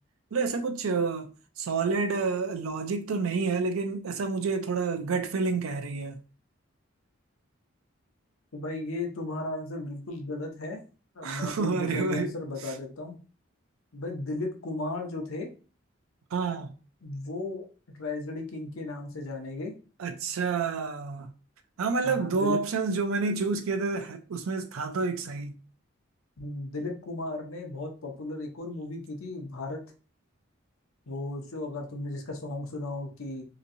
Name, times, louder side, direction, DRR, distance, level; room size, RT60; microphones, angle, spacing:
voice 1, 0.3-1.3 1.6-6.2 11.2-12.3 16.3-16.7 20.0-21.3 21.8-25.6, right 4 dB, 90° right, 0.5 m, -29 dB
voice 2, 8.5-10.8 11.1-13.2 13.9-15.5 17.0-17.7 17.9-19.7 22.0-22.6 26.4-29.8 31.1-33.5, left 2 dB, 90° left, 0.7 m, -35 dB
3.0 x 2.6 x 2.6 m
head